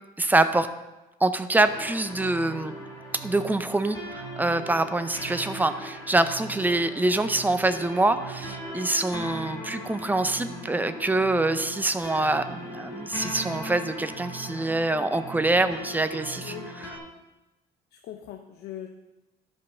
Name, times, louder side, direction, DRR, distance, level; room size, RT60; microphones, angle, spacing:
voice 1, 0.2-0.7 1.2-2.7 3.2-16.6, right 2 dB, 10° right, 10 dB, 0.6 m, -25 dB
sound 1, 1.6-17.0, right 1 dB, 15° left, 4.0 m, -39 dB
voice 2, 16.4-16.7 17.9-18.9, left 11 dB, 85° left, 3 dB, 0.8 m, -40 dB
12.0 x 5.4 x 5.7 m, 1.0 s
cardioid pair, 110°, 17 cm